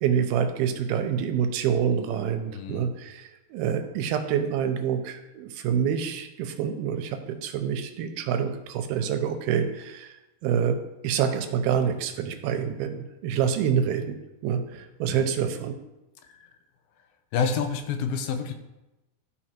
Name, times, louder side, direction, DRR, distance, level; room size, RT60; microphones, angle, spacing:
voice 1, 0.0-10.1 10.4-10.8 11.0-14.2 14.4-15.7, right 8 dB, 85° right, 7 dB, 2.7 m, -27 dB
voice 2, 2.5-2.9 15.1-15.3 16.3-16.5 17.3-18.5, left 6 dB, 80° left, 6 dB, 2.5 m, -28 dB
12.5 x 4.6 x 4.4 m, 0.99 s
omnidirectional pair, 4.3 m